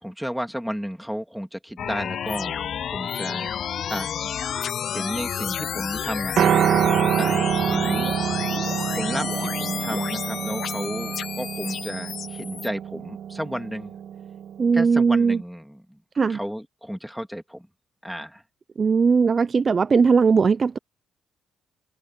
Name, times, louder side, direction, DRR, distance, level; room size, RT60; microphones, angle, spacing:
voice 1, 0.0-4.1 4.9-6.4 7.2-8.1 8.9-13.9 14.7-16.0 16.3-17.7 18.0-18.4, equal, ahead, 3.1 m, -33 dB
asceninding weirdness, 1.8-12.7, left 9 dB, 60° left, 0.4 m, -31 dB
Piano, 6.4-14.6, right 9 dB, 70° right, 1.5 m, -26 dB
voice 2, 14.6-15.4 16.2-16.4 18.8-20.8, right 5 dB, 40° right, 0.5 m, -19 dB
cardioid pair, 90°, 0 cm